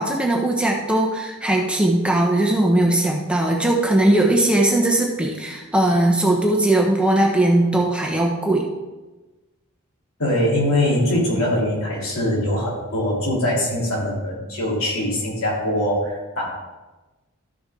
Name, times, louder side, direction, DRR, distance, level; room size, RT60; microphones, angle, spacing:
voice 1, 0.0-8.6, right 1 dB, 5° right, -1 dB, 1.0 m, -19 dB
voice 2, 10.2-16.5, left 1 dB, 70° left, -5 dB, 3.5 m, -22 dB
13.0 x 7.0 x 3.8 m, 1.1 s
head